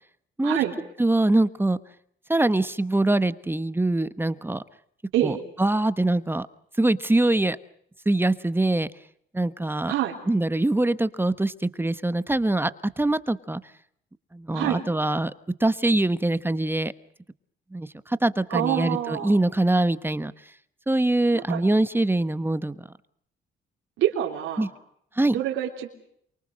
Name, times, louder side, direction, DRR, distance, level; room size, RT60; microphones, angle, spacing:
voice 1, 0.4-0.7 5.1-5.4 9.9-10.2 14.5-14.8 18.5-19.3 21.3-21.6 24.0-24.7 25.3-25.9, right 12 dB, 90° right, -1 dB, 3.5 m, -26 dB
voice 2, 1.0-1.8 2.3-4.6 5.2-6.5 6.8-7.6 8.0-8.9 9.3-9.9 10.3-12.7 13.0-13.6 14.3-15.3 15.6-16.9 17.7-20.3 20.9-22.9 24.6-24.7 25.2-25.4, right 2 dB, 10° right, 14 dB, 1.1 m, -23 dB
28.5 x 24.0 x 6.4 m, 0.69 s
cardioid pair, 90°, 20 cm